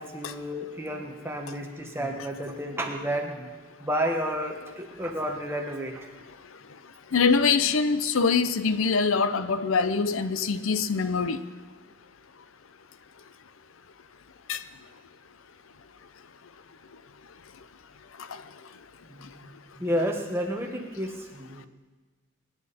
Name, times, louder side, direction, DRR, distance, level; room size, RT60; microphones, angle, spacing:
voice 1, 0.0-6.1 19.1-21.7, equal, 10° right, 1 dB, 1.4 m, -31 dB
voice 2, 7.1-11.4 14.5-14.6, left 5 dB, 80° left, 13 dB, 0.6 m, -24 dB
23.0 x 11.0 x 4.3 m, 1.3 s
head